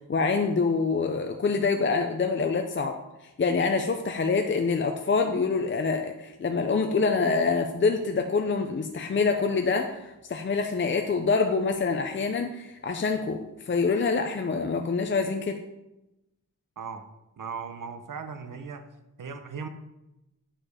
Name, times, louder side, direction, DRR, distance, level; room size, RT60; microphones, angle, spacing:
voice 1, 0.1-3.0 3.4-15.6, left 4 dB, 35° left, 4 dB, 0.5 m, -26 dB
voice 2, 17.4-18.8 19.2-19.7, right 6 dB, 70° right, 7 dB, 0.9 m, -37 dB
8.9 x 5.0 x 4.9 m, 0.95 s
wide cardioid pair, 120°, 33 cm